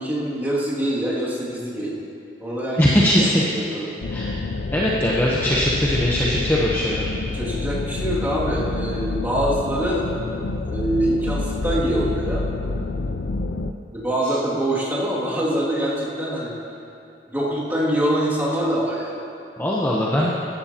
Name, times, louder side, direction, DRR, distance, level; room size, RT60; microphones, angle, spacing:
voice 1, 0.0-1.9 2.4-2.8 3.2-3.3 3.5-3.9 7.3-10.0 10.7-12.4 13.9-16.5 17.3-19.2, right 1 dB, 10° right, -8 dB, 2.5 m, -24 dB
voice 2, 2.8-3.5 4.1-4.3 4.7-7.1 19.6-20.3, equal, 10° left, -6 dB, 0.9 m, -20 dB
sound 1, 4.0-13.7, left 3 dB, 70° left, 0.5 m, -28 dB
15.5 x 12.0 x 3.0 m, 2.6 s
head